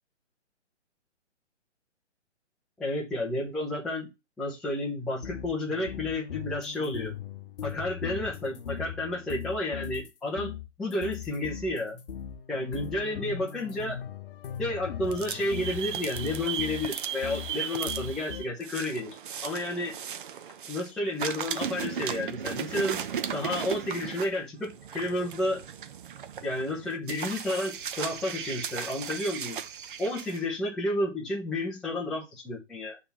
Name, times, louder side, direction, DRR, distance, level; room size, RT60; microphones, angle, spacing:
voice 1, 2.8-4.1 4.4-7.1 7.6-10.5 10.8-12.1 12.5-14.0 14.6-19.1 19.4-19.9 20.7-23.0 23.3-25.6 26.4-29.6 30.0-33.0, left 1 dB, ahead, -4 dB, 0.5 m, -31 dB
sound 1, 5.2-10.1 10.4-17.5 17.9-18.4, left 9 dB, 50° left, 0.8 m, -39 dB
sound 2, 15.0-20.9 21.2-30.4, right 8 dB, 45° right, 0.8 m, -36 dB
6.9 x 3.5 x 5.5 m, 0.24 s
figure-of-eight pair, 140°, 36 cm